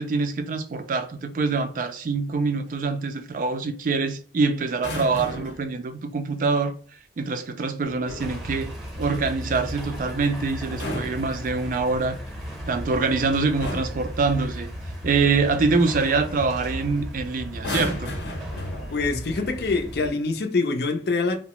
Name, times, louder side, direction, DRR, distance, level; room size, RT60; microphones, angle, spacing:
voice 1, 0.0-6.7 7.2-8.7 9.0-12.2 12.7-14.7 15.0-18.1, right 4 dB, 50° right, 0.3 m, -25 dB
sound 1, 4.7-5.7 7.8-8.4 10.6-11.9 13.0-13.2 13.6-14.1 15.8-16.0 16.3-16.6 17.5-19.2 20.1-20.4, left 1 dB, 85° left, 0.9 m, -34 dB
sound 2, 8.2-20.1, equal, ahead, 0.7 m, -35 dB
voice 2, 18.9-21.4, left 3 dB, 60° left, 0.5 m, -25 dB
2.8 x 2.0 x 2.9 m
head